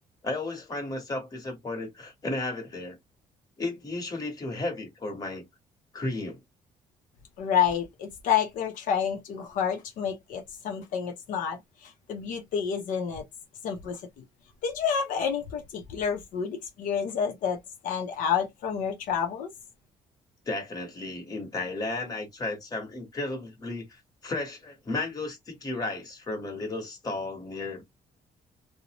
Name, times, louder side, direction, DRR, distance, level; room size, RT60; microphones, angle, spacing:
voice 1, 0.2-3.0 3.6-5.4 5.9-6.4 20.5-27.8, left 2 dB, 30° left, 1.2 m, -34 dB
voice 2, 7.4-13.2 13.6-14.2 14.6-19.5, left 7 dB, 75° left, 0.6 m, -29 dB
2.5 x 2.0 x 2.9 m
cardioid pair, 120°, 14 cm